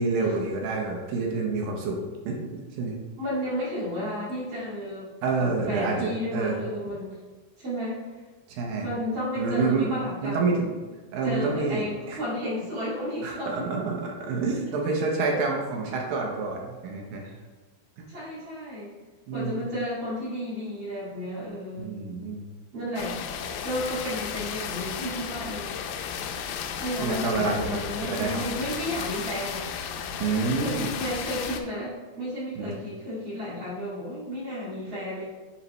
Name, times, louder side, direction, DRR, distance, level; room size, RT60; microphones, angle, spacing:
voice 1, 0.0-2.0 2.3-3.0 5.2-6.6 8.5-8.9 9.4-9.9 10.2-10.7 11.1-12.2 13.2-17.3 18.0-18.1 19.3-19.6 21.8-22.5 27.0-28.4 30.2-30.9 32.6-32.7, right 4 dB, 75° right, 0 dB, 2.1 m, -28 dB
voice 2, 3.2-5.1 5.4-7.2 7.6-8.0 8.8-10.8 11.2-13.7 14.7-14.8 15.3-15.4 18.1-18.9 19.3-21.9 22.7-23.2 23.6-25.8 26.7-29.7 30.3-35.2, equal, 40° right, -9 dB, 1.9 m, -32 dB
sound 1, 23.0-31.6, left 7 dB, 80° left, 2.5 m, -34 dB
10.0 x 4.0 x 3.1 m, 1.3 s
omnidirectional pair, 5.1 m